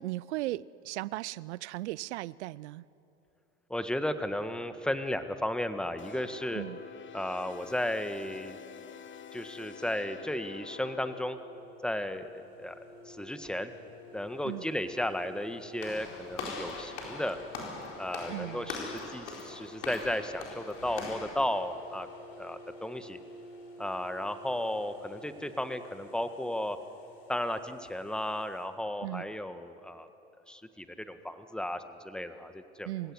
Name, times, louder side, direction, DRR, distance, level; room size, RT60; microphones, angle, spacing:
voice 1, 0.0-2.8 6.5-6.8 14.4-14.6 18.3-18.7 29.0-29.2 32.9-33.1, right 17 dB, 80° right, 22 dB, 0.6 m, -37 dB
voice 2, 3.7-6.6 7.1-8.6 9.3-11.4 11.8-12.8 13.0-13.7 14.1-17.4 18.0-22.1 22.4-23.2 23.8-26.8 27.3-30.1 30.5-33.1, left 1 dB, ahead, 9 dB, 1.6 m, -34 dB
sound 1, 6.0-11.2, left 8 dB, 35° left, 1.3 m, -47 dB
sound 2, 10.8-28.7, equal, 60° left, 5.7 m, -52 dB
Walk footsteps / Slam, 15.8-21.4, left 4 dB, 80° left, 4.3 m, -41 dB
27.0 x 17.0 x 9.8 m, 2.8 s
hypercardioid pair, 70°, 34 cm